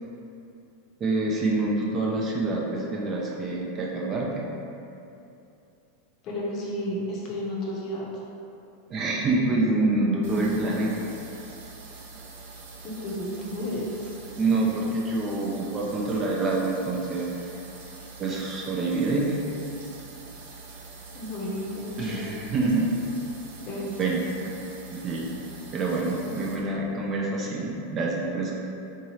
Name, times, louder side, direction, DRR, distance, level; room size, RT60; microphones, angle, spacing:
voice 1, 1.0-4.4 8.9-11.0 14.3-17.3 18.2-19.4 22.0-22.9 24.0-24.5 24.9-28.6, right 2 dB, 25° right, -2 dB, 0.4 m, -26 dB
voice 2, 6.2-8.1 12.8-14.1 21.1-22.3 23.6-24.0, left 1 dB, 35° left, -4 dB, 0.7 m, -32 dB
sound 1, 10.2-26.6, right 4 dB, 70° right, 0.6 m, -44 dB
3.7 x 2.7 x 3.0 m, 2.7 s
supercardioid pair, 150°, 0 cm